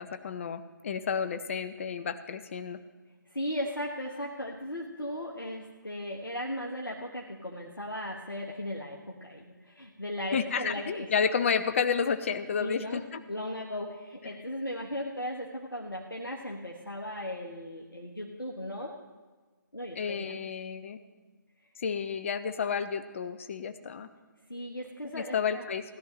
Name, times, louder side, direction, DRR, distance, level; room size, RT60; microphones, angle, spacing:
voice 1, 0.0-2.8 10.3-13.2 14.3-14.4 20.0-21.0 21.8-24.1 25.1-25.8, left 6 dB, 40° left, 11 dB, 0.7 m, -31 dB
voice 2, 3.3-11.1 12.6-13.0 13.3-19.0 19.7-20.4 24.5-25.6, left 1 dB, 85° left, -2 dB, 1.2 m, -37 dB
16.5 x 11.0 x 3.2 m, 1.4 s
figure-of-eight pair, 140°, 11 cm